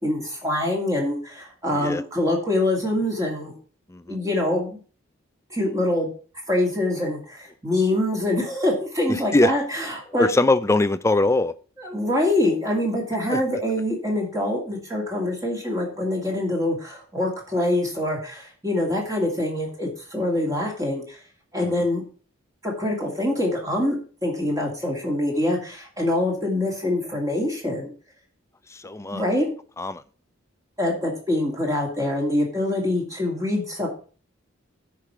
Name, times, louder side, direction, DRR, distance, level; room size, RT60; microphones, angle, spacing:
voice 1, 0.0-3.5 4.1-4.8 5.5-6.1 6.5-10.3 11.8-21.2 21.5-22.0 22.6-24.0 24.2-27.9 29.1-29.5 30.8-33.9, left 1 dB, 15° right, -1 dB, 2.4 m, -25 dB
voice 2, 9.1-9.5 10.2-11.5 13.3-13.4 21.6-21.9 28.7-29.3 29.8-30.0, left 2 dB, 15° left, 13 dB, 0.4 m, -22 dB
10.5 x 4.8 x 6.0 m, 0.40 s
head